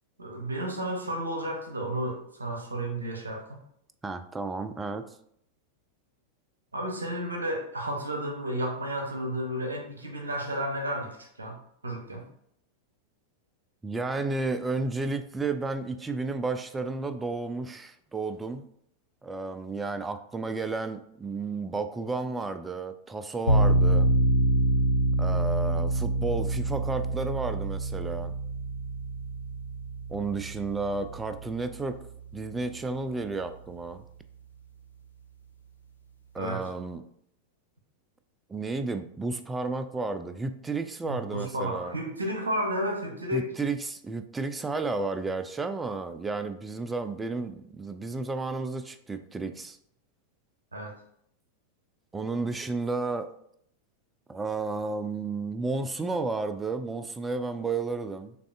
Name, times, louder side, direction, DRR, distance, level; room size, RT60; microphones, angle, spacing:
voice 1, 0.2-3.6 6.7-12.2 36.4-36.6 41.0-43.5 50.7-51.0, equal, 75° right, 2 dB, 0.8 m, -32 dB
voice 2, 4.0-5.0 13.8-18.6 19.2-24.1 25.2-28.3 30.1-32.0 32.3-34.0 36.3-37.0 38.5-42.0 43.3-49.8 52.1-53.3 54.3-58.4, right 3 dB, 15° right, 10 dB, 0.3 m, -32 dB
sound 1, 23.5-32.3, right 1 dB, 75° left, 0.5 m, -26 dB
6.6 x 2.5 x 2.4 m, 0.70 s
figure-of-eight pair, 90°, 0 cm